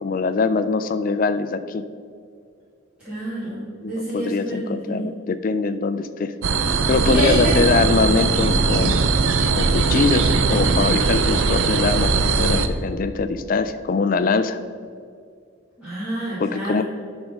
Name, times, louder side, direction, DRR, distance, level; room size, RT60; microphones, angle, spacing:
voice 1, 0.0-1.8 3.8-6.3 6.9-9.1 9.5-14.6 16.4-16.8, left 4 dB, 40° left, 11 dB, 0.3 m, -22 dB
voice 2, 3.0-5.1 7.0-7.5 15.8-16.8, right 1 dB, 5° right, -14 dB, 2.1 m, -27 dB
sound 1, 6.4-12.7, right 4 dB, 65° right, 0.5 m, -20 dB
10.5 x 3.6 x 5.2 m, 2.2 s
head